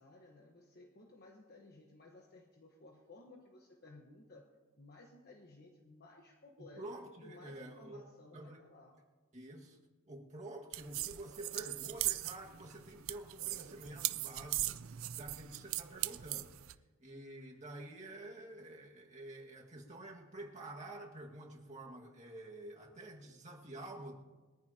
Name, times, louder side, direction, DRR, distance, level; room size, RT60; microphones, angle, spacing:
voice 1, 0.0-4.5 4.8-6.8 7.2-9.0, left 2 dB, 50° left, 1 dB, 1.2 m, -57 dB
voice 2, 6.6-8.1 8.3-8.6 9.3-9.8 10.1-16.5 17.0-24.2, right 1 dB, 35° right, -1 dB, 1.9 m, -49 dB
sound 1, 10.7-16.7, right 16 dB, 70° right, 0.5 m, -39 dB
22.0 x 14.0 x 2.9 m, 1.3 s
head